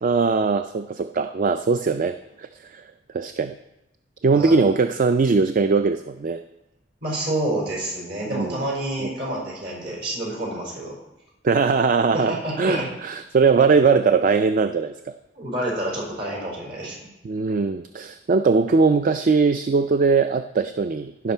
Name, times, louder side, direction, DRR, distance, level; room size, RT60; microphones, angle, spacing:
voice 1, 0.0-2.8 3.1-3.5 4.2-6.4 8.3-8.6 9.0-9.1 11.4-14.9 17.2-21.3, right 4 dB, 45° right, 9 dB, 0.4 m, -20 dB
voice 2, 4.3-4.7 7.0-11.0 12.1-12.9 15.3-16.9, right 1 dB, 65° right, -3 dB, 4.7 m, -28 dB
16.0 x 5.9 x 4.4 m, 0.91 s
head